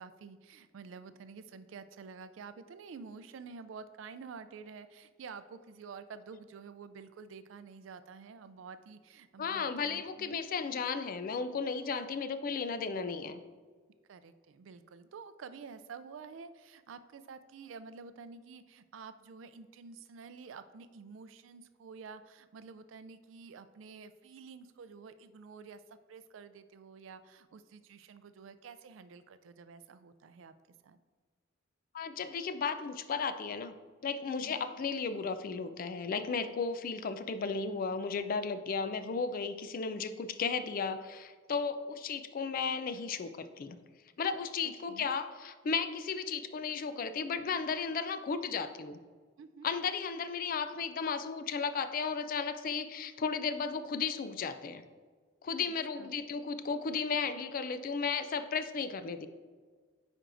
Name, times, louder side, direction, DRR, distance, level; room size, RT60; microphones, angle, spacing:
voice 1, 0.0-10.4 14.1-25.8 26.1-30.5 30.8-31.0 34.3-34.7 44.6-45.1 49.4-49.7 56.0-56.2, right 5 dB, 80° right, 12 dB, 0.4 m, -49 dB
voice 2, 9.4-13.4 31.9-33.7 34.0-43.8 44.2-49.0 49.6-54.8 55.4-59.3, left 5 dB, 45° left, 10 dB, 0.4 m, -34 dB
9.4 x 4.4 x 2.6 m, 1.5 s
head